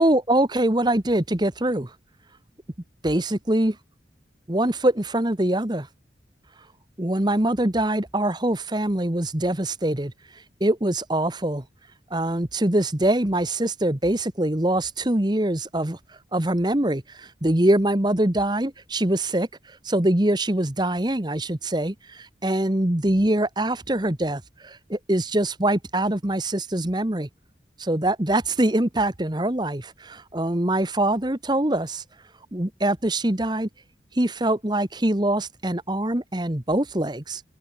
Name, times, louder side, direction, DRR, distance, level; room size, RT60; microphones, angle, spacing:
voice 1, 0.0-2.0 3.0-3.8 4.5-5.9 6.5-6.7 7.0-27.3 27.8-33.7 34.1-37.4, right 1 dB, 25° right, 1.3 m, -24 dB
open air
head